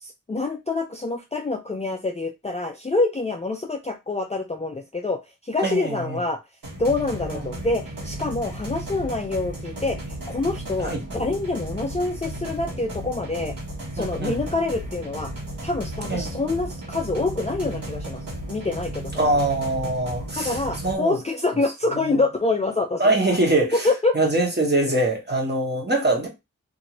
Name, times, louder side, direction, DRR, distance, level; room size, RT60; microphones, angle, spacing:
voice 1, 0.0-6.4 6.8-13.5 13.9-15.3 15.6-18.2 18.5-19.3 20.4-23.2 23.8-24.2, left 3 dB, 20° left, 0.4 m, -26 dB
voice 2, 5.6-6.2 7.3-7.4 10.8-11.0 14.0-14.4 16.1-16.4 19.1-21.2 23.0-23.8 24.1-26.3, right 2 dB, 30° right, 1.2 m, -23 dB
sound 1, 6.6-20.9, right 1 dB, 85° right, 1.2 m, -34 dB
2.7 x 2.6 x 2.9 m
wide cardioid pair, 65°, 33 cm